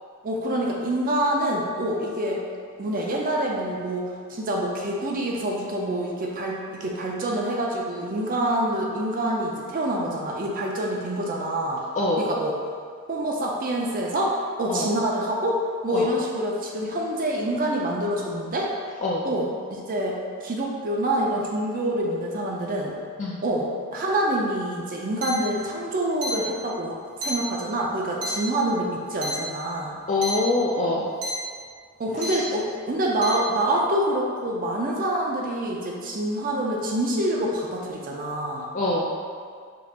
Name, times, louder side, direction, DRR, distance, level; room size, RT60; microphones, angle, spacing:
voice 1, 0.2-2.4 2.8-11.8 12.2-12.6 13.1-14.3 14.6-15.6 15.8-18.7 19.2-20.2 20.4-23.0 23.4-30.0 32.0-38.7, right 1 dB, 40° right, -2 dB, 0.4 m, -26 dB
sound 1, 25.2-25.3 26.2-26.3 27.2-27.3 28.2-28.3 29.2-29.3 30.2-30.3 31.2-31.3 32.2-32.3 33.2-33.3, equal, 75° right, 0.8 m, -29 dB
voice 2, 30.1-31.1 38.7-39.1, left 2 dB, 35° left, -5 dB, 0.3 m, -24 dB
5.1 x 2.4 x 2.8 m, 2.1 s
head